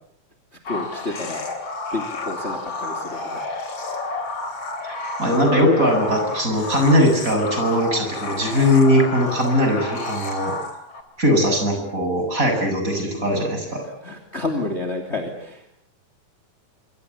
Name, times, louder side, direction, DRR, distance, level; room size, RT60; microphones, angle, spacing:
sound 1, 0.7-11.0, left 2 dB, 50° left, 4.5 m, -30 dB
voice 1, 0.7-1.4 1.9-3.4 13.7-15.8, left 2 dB, 20° left, 5 dB, 3.1 m, -30 dB
voice 2, 4.8-10.5 11.2-13.8, equal, 25° right, 4 dB, 8.0 m, -20 dB
26.0 x 25.5 x 8.4 m, 0.69 s
omnidirectional pair, 3.5 m